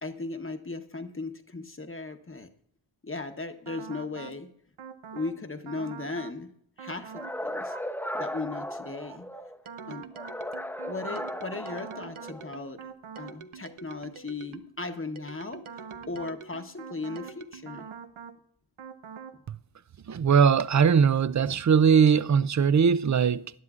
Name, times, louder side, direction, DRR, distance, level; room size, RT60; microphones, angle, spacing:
voice 1, 0.0-2.5 3.0-4.5 5.1-6.5 6.8-7.7 8.1-9.3 9.9-10.1 10.9-12.8 13.2-15.6 16.1-17.9 19.3-19.4, left 3 dB, 25° left, 1.0 m, -37 dB
sound 1, 3.7-4.4 4.8-5.4 5.7-6.4 6.8-7.4 7.7-14.7 15.2-18.4 18.8-19.4, right 6 dB, 80° right, 0.8 m, -44 dB
sound 2, 7.1-9.6 10.1-12.6, left 1 dB, 5° left, 0.7 m, -36 dB
voice 2, 20.1-23.5, right 6 dB, 40° right, 0.4 m, -20 dB
19.5 x 11.0 x 2.4 m
wide cardioid pair, 85°, 48 cm